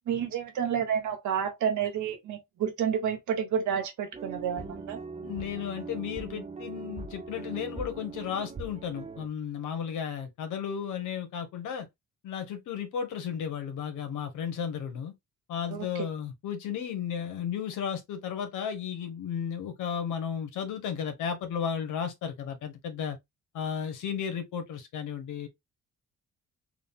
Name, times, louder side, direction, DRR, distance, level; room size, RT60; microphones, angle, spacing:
voice 1, 0.1-5.0 15.7-15.8, right 8 dB, 75° right, 1.4 m, -30 dB
sound 1, 4.1-9.3, right 4 dB, 20° right, 0.7 m, -41 dB
voice 2, 5.2-11.9 12.2-15.1 15.5-23.2 23.5-25.5, left 8 dB, 80° left, 1.2 m, -34 dB
3.7 x 2.4 x 3.6 m
cardioid pair, 90°, 30 cm